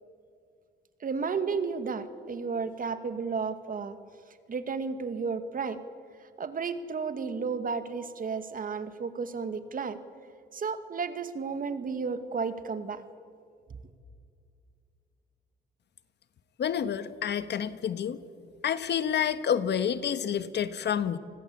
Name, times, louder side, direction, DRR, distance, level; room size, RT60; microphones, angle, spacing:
voice 1, 1.0-4.0 4.5-5.8 6.4-10.0 10.5-13.0, right 5 dB, 45° right, 10 dB, 2.1 m, -33 dB
voice 2, 16.6-18.2 18.6-21.2, left 8 dB, 60° left, 13 dB, 1.4 m, -28 dB
29.0 x 20.5 x 8.6 m, 2.3 s
cardioid pair, 90°, 20 cm